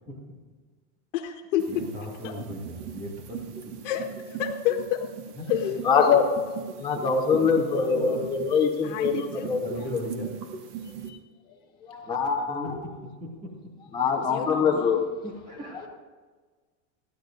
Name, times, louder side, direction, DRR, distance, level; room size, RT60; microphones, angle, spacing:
voice 1, 1.1-1.6 2.2-2.3 3.8-5.0 5.5-5.8 6.1-6.2 7.3-7.4 8.8-9.5 14.3-15.0, left 11 dB, 85° left, 1 dB, 1.4 m, -30 dB
sound 1, 1.6-11.1, right 7 dB, 40° right, 1.3 m, -39 dB
voice 2, 1.7-3.4 5.4-5.5 7.4-8.2 9.6-10.3 12.5-12.7 13.2-13.5 15.2-15.9, equal, 20° right, -2 dB, 2.4 m, -36 dB
voice 3, 5.8-6.3 6.8-9.6 9.9-10.0 11.9-12.8 13.9-15.0, left 5 dB, 10° left, -2 dB, 1.1 m, -23 dB
28.5 x 10.0 x 2.6 m, 1.4 s
supercardioid pair, 180°, 37 cm